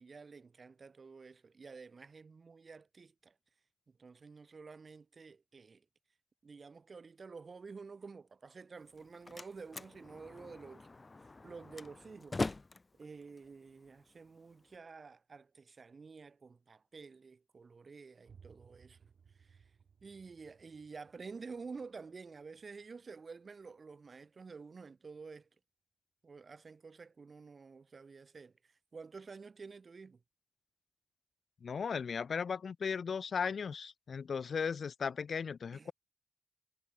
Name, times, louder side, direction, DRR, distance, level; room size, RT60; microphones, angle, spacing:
voice 1, 0.0-3.3 3.9-5.8 6.4-10.9 11.2-12.4 12.9-19.0 19.4-19.7 20.0-25.5 26.2-30.2 35.7-35.9, right 4 dB, 60° right, 2.9 m, -50 dB
Slam, 8.8-14.8, left 3 dB, 35° left, 1.1 m, -43 dB
sound 1, 18.3-23.8, right 6 dB, 85° right, 4.1 m, -64 dB
voice 2, 31.6-35.9, left 6 dB, 80° left, 0.7 m, -36 dB
wide cardioid pair, 75°, 0 cm